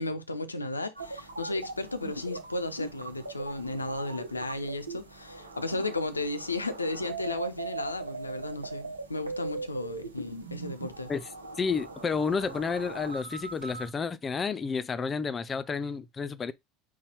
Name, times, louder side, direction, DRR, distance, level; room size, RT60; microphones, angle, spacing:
voice 1, 0.0-11.1, left 2 dB, 90° left, 0.5 m, -34 dB
sound 1, 0.9-13.9, right 3 dB, 90° right, 0.8 m, -40 dB
voice 2, 11.6-16.5, left 5 dB, 25° left, 0.4 m, -31 dB
4.1 x 2.2 x 4.3 m
figure-of-eight pair, 70°, 0 cm